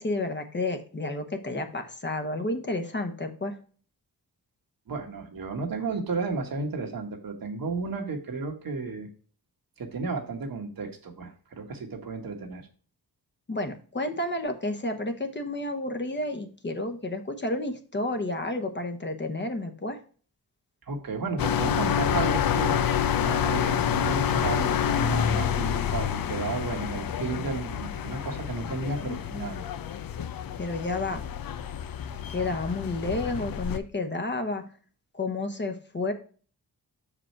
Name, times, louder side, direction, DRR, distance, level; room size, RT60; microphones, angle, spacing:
voice 1, 0.0-3.6 13.5-20.0 30.6-31.2 32.3-34.6 35.1-36.1, left 2 dB, 30° left, 6 dB, 1.0 m, -31 dB
voice 2, 4.9-9.1 9.8-12.7 20.9-29.7, right 4 dB, 65° right, 3 dB, 1.6 m, -33 dB
sound 1, 21.4-33.8, left 9 dB, 65° left, 0.6 m, -28 dB
6.2 x 5.0 x 4.5 m, 0.41 s
cardioid pair, 95°, 38 cm